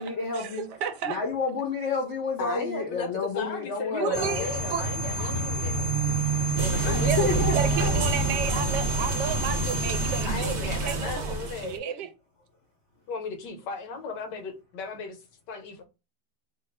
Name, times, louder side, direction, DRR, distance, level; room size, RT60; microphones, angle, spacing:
voice 1, 0.0-0.7 1.0-4.5 6.2-6.3 6.9-8.2, left 5 dB, 55° left, 0.8 m, -30 dB
voice 2, 0.8-1.2 4.0-4.9 5.2-5.3 7.0-12.1, right 8 dB, 75° right, 1.1 m, -32 dB
voice 3, 2.4-3.1 3.3-7.4 8.5-8.6 10.2-11.8 13.1-15.2 15.5-15.8, left 4 dB, 75° left, 1.3 m, -36 dB
sound 1, 4.1-10.2, right 3 dB, 25° left, 0.4 m, -29 dB
sound 2, 6.6-11.8, right 2 dB, 55° right, 0.8 m, -29 dB
3.1 x 2.4 x 4.0 m
omnidirectional pair, 2.0 m